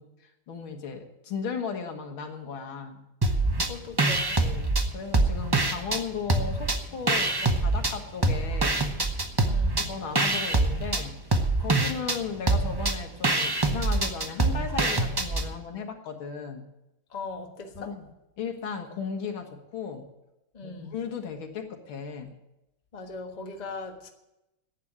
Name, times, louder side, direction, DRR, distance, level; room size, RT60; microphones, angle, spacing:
voice 1, 0.0-3.0 4.4-8.8 9.8-11.2 11.6-16.7 17.8-18.1 18.4-20.1 20.6-22.4, left 6 dB, 80° left, 4 dB, 2.4 m, -36 dB
sound 1, 3.2-3.7 4.0-6.0 6.3-7.9 8.2-15.5, right 2 dB, 30° right, 0.4 m, -25 dB
voice 2, 3.6-4.5 9.4-9.9 17.1-17.9 20.5-21.0 22.9-24.1, left 4 dB, 25° left, 3 dB, 1.3 m, -39 dB
11.0 x 8.9 x 9.9 m, 0.91 s
omnidirectional pair, 2.2 m